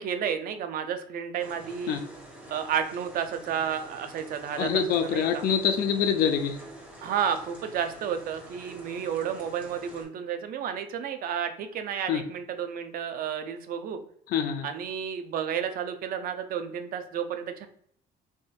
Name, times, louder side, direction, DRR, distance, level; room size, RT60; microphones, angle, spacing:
voice 1, 0.0-2.0 2.5-5.4 7.0-14.0 14.6-17.7, right 8 dB, 60° right, 8 dB, 0.5 m, -31 dB
sound 1, 1.4-10.0, right 1 dB, 10° right, 1.3 m, -47 dB
voice 2, 4.6-6.6 12.1-12.2 14.3-14.7, left 7 dB, 65° left, 7 dB, 0.4 m, -25 dB
3.6 x 2.6 x 2.3 m, 0.65 s
cardioid pair, 110°, 17 cm